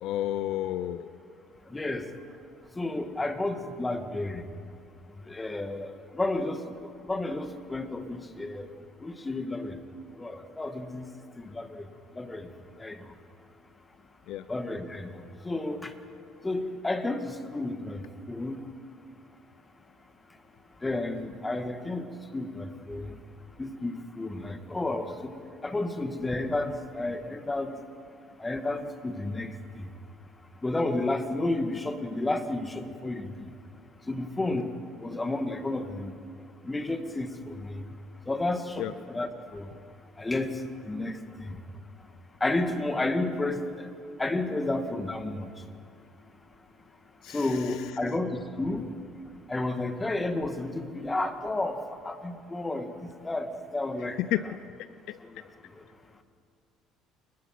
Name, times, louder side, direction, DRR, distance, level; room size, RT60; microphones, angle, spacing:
voice 1, 0.0-1.1 14.3-14.5 38.8-38.9 47.2-47.8 54.2-54.4 55.1-55.2, left 13 dB, 70° left, 14 dB, 0.6 m, -31 dB
voice 2, 1.7-2.1 2.8-4.4 5.3-8.7 9.0-9.8 10.2-11.1 11.4-11.9 12.2-12.5 12.8-13.1 14.5-15.9 16.4-18.6 20.8-23.2 23.6-25.3 25.6-27.7 28.4-29.9 30.6-33.3 34.1-34.7 35.0-36.1 36.6-37.8 38.3-39.7 40.2-41.6 42.4-43.9 44.2-45.5 47.3-48.9 49.5-54.2, left 2 dB, 15° left, 7 dB, 2.2 m, -31 dB
29.0 x 21.0 x 6.1 m, 2.3 s
supercardioid pair, 80°, 0 cm